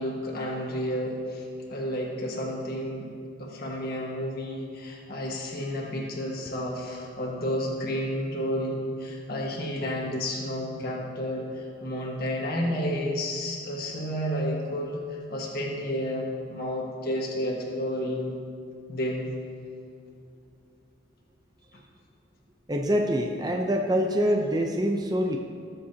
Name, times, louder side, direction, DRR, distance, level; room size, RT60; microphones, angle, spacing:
voice 1, 0.0-1.4 1.7-3.1 3.4-18.4 18.9-19.3, equal, 45° left, -2 dB, 1.6 m, -31 dB
voice 2, 22.7-25.4, equal, 20° right, 2 dB, 0.6 m, -25 dB
19.5 x 7.7 x 2.8 m, 2.5 s
head